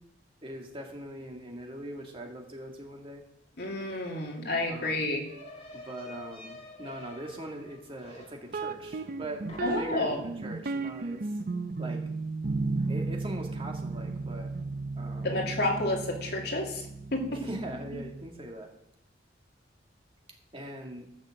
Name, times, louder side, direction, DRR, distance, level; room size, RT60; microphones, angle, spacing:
voice 1, 0.4-3.2 4.7-5.1 5.7-9.4 9.8-11.3 11.8-12.0 12.9-14.5 15.0-15.3 17.3-18.7 20.5-21.1, right 1 dB, 30° right, 1 dB, 2.0 m, -41 dB
voice 2, 3.6-5.3 9.6-10.2 15.2-17.4, left 2 dB, 60° left, 0 dB, 2.6 m, -30 dB
sound 1, 3.6-3.7 4.0-9.2 9.5-10.2, left 2 dB, 35° left, 2.6 m, -49 dB
sound 2, 8.5-18.3, right 3 dB, 50° right, 0.6 m, -35 dB
13.5 x 6.3 x 7.6 m, 0.77 s
head